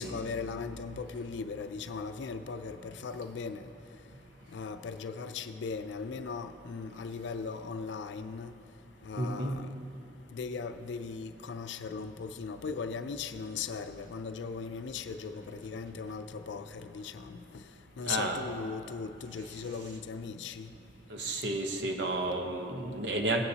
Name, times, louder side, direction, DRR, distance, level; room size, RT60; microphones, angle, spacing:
voice 1, 0.0-3.7 4.5-8.5 9.0-9.7 10.3-17.6 18.0-20.7, left 5 dB, 70° left, 9 dB, 0.4 m, -38 dB
voice 2, 9.2-9.6 18.0-18.4 21.1-23.4, right 2 dB, 70° right, 3 dB, 1.0 m, -32 dB
16.5 x 9.6 x 2.8 m, 2.7 s
head